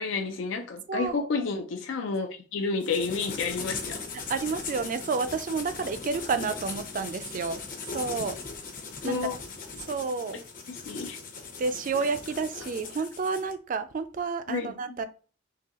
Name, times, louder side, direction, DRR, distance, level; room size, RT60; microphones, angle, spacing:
voice 1, 0.0-4.0 9.0-9.4 10.3-10.4 10.7-11.2 14.5-14.7, left 4 dB, 75° left, 0.4 m, -30 dB
voice 2, 0.9-1.3 4.3-8.4 9.0-9.2 9.8-10.4 11.6-15.0, right 4 dB, 45° right, 0.3 m, -30 dB
sound 1, 2.8-13.5, left 4 dB, 45° left, 0.7 m, -39 dB
3.8 x 2.7 x 2.9 m
head